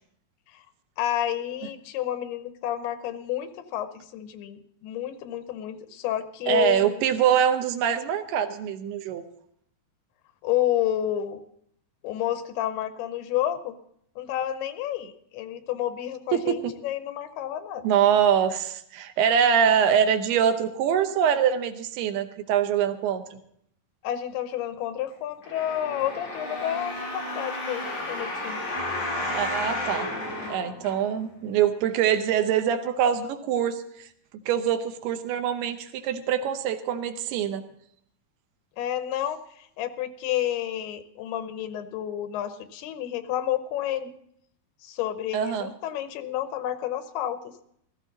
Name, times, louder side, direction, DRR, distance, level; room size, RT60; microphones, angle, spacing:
voice 1, 1.0-7.1 10.4-11.4 12.0-13.8 14.2-17.9 24.0-28.6 38.8-44.1 44.8-47.5, left 11 dB, 85° left, 11 dB, 2.8 m, -30 dB
voice 2, 6.5-9.2 16.3-16.7 17.8-23.4 29.3-30.1 30.5-34.1 34.5-37.6 45.3-45.7, right 8 dB, 90° right, 8 dB, 2.9 m, -24 dB
sound 1, 25.4-31.3 31.9-32.0, left 1 dB, 35° left, 6.6 m, -32 dB
16.0 x 14.5 x 4.0 m, 0.69 s
omnidirectional pair, 4.5 m